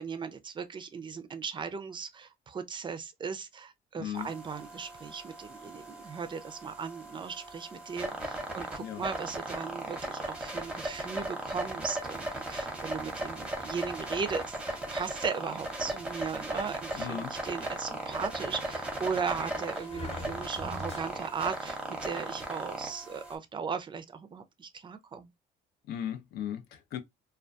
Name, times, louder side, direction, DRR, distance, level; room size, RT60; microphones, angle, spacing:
voice 1, 0.0-25.3, right 6 dB, 30° right, 0.4 m, -37 dB
voice 2, 4.0-4.3 8.8-9.1 16.9-17.3 25.9-27.0, left 10 dB, 70° left, 0.5 m, -37 dB
sound 1, 4.1-23.3, right 1 dB, 5° right, 0.7 m, -37 dB
Sliding door, 16.9-21.5, left 2 dB, 40° left, 0.9 m, -45 dB
2.2 x 2.2 x 2.5 m
cardioid pair, 110°, 17 cm